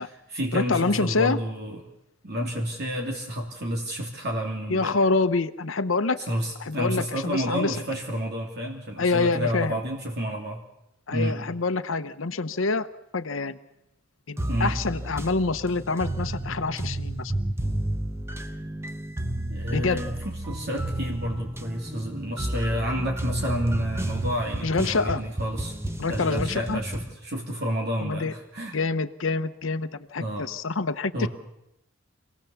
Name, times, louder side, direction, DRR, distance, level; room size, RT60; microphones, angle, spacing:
voice 1, 0.0-1.8 2.2-5.0 6.3-10.6 11.1-11.4 14.5-14.8 19.5-25.7 26.1-28.8 30.2-30.5 31.1-31.3, equal, 55° right, 0 dB, 2.9 m, -30 dB
voice 2, 0.5-1.4 4.7-6.2 6.6-7.8 9.0-9.8 11.1-12.9 13.1-13.6 14.3-17.3 19.7-20.0 24.6-25.2 26.0-26.8 28.0-28.3 28.7-31.3, left 3 dB, 75° left, 9 dB, 0.9 m, -26 dB
sound 1, 14.4-27.2, right 1 dB, 15° right, 1.1 m, -32 dB
26.5 x 18.0 x 7.1 m, 0.82 s
head